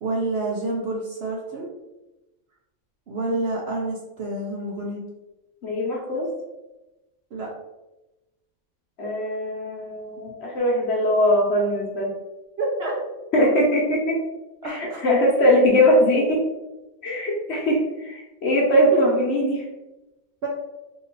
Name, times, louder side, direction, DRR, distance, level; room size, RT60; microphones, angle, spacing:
voice 1, 0.0-1.7 3.1-5.0 7.3-7.5 12.6-12.9 14.6-15.0 18.9-19.0 20.4-20.5, right 2 dB, 60° right, -2 dB, 0.7 m, -28 dB
voice 2, 5.6-6.3 9.0-12.1 13.3-14.2 14.7-16.4 17.0-19.6, equal, 55° left, -2 dB, 1.0 m, -21 dB
2.9 x 2.7 x 3.9 m, 1.0 s
omnidirectional pair, 1.5 m